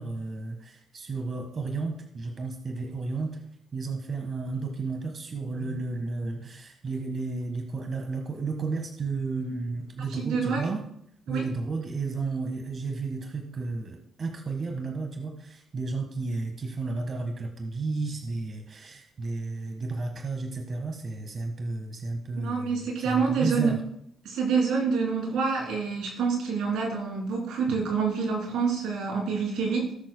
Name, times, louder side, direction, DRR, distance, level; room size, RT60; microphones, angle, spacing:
voice 1, 0.0-3.4 3.7-10.8 11.3-23.8, right 3 dB, 45° right, 4 dB, 1.4 m, -32 dB
voice 2, 10.1-10.6 11.3-11.4 22.3-23.7 24.2-29.9, right 5 dB, 85° right, -1 dB, 2.9 m, -27 dB
18.5 x 6.3 x 2.2 m, 0.68 s
cardioid pair, 90°, 0 cm